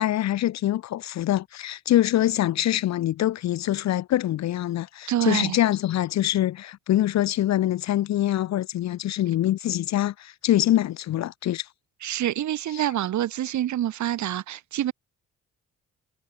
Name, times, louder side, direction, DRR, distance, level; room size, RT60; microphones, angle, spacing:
voice 1, 0.0-11.7 12.7-12.8, left 13 dB, 65° left, 0.7 m, -24 dB
voice 2, 5.1-5.6 12.0-14.9, right 12 dB, 70° right, 2.1 m, -26 dB
cardioid pair, 90°, 30 cm